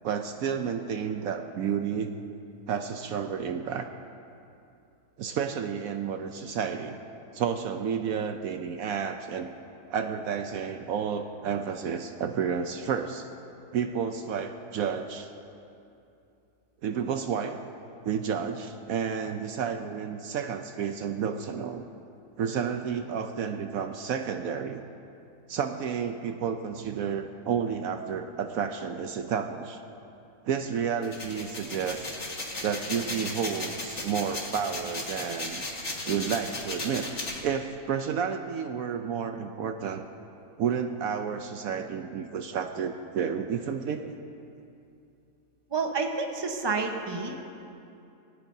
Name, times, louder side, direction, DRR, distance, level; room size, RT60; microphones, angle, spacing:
voice 1, 0.0-2.1 2.7-3.9 5.2-7.0 7.3-9.5 9.9-13.3 13.7-15.3 16.8-17.6 18.0-21.9 22.4-24.8 25.5-29.8 30.4-32.1 32.6-35.6 36.0-37.1 37.4-40.1 40.6-44.1, right 7 dB, 70° right, 7 dB, 1.0 m, -31 dB
sound 1, 31.0-37.4, left 2 dB, 50° left, 2.1 m, -35 dB
voice 2, 45.7-47.4, right 4 dB, 20° right, 3 dB, 0.9 m, -29 dB
19.5 x 17.0 x 2.7 m, 2.7 s
omnidirectional pair, 1.6 m